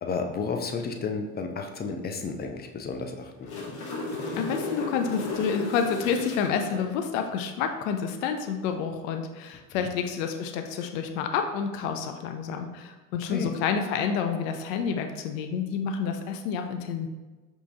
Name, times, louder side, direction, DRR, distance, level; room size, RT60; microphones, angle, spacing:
voice 1, 0.0-3.5 9.8-9.9 13.3-13.5, left 4 dB, 25° left, 4 dB, 0.6 m, -32 dB
sound 1, 3.2-6.8 10.6-10.8, left 2 dB, 50° left, 1.0 m, -34 dB
voice 2, 4.4-17.1, left 6 dB, 70° left, 5 dB, 0.6 m, -29 dB
5.3 x 3.1 x 2.6 m, 1.2 s
hypercardioid pair, 65°, 42 cm